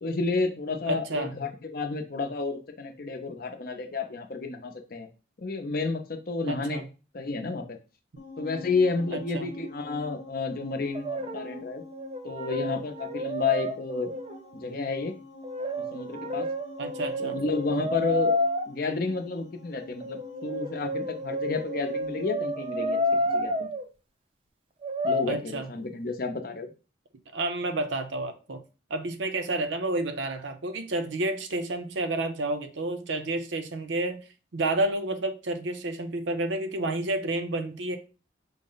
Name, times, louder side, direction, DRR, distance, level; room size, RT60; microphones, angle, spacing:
voice 1, 0.0-5.1 5.4-6.8 7.1-7.8 8.4-11.8 12.2-14.1 14.5-15.1 15.8-16.5 17.2-18.3 18.7-23.0 23.3-23.7 25.0-26.7, left 3 dB, 50° left, 0.6 m, -31 dB
voice 2, 0.9-1.3 6.5-6.8 9.1-9.5 16.8-17.4 25.3-25.7 27.3-28.6 28.9-34.2 34.5-38.0, right 2 dB, 75° right, 0.6 m, -30 dB
sound 1, 8.2-23.5, left 3 dB, 90° left, 1.0 m, -47 dB
Brass instrument, 10.9-11.6 11.9-14.4 15.4-18.6 20.0-23.8 24.8-25.3, left 1 dB, 30° right, 0.4 m, -30 dB
5.3 x 2.0 x 3.8 m
head